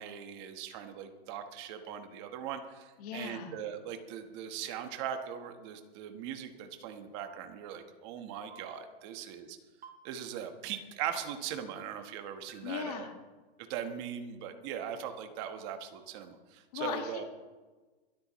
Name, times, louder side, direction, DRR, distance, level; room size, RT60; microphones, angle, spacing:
voice 1, 0.0-9.6 10.0-13.1 13.7-17.2, right 9 dB, 25° right, 7 dB, 1.2 m, -40 dB
voice 2, 3.0-3.5 12.6-13.1 16.7-17.2, left 7 dB, 40° left, 4 dB, 1.8 m, -38 dB
sound 1, 8.5-8.7 9.8-10.0 11.1-11.2 12.5-12.6, right 6 dB, 80° right, 3.9 m, -49 dB
22.0 x 12.5 x 3.1 m, 1.3 s
hypercardioid pair, 170°, 31 cm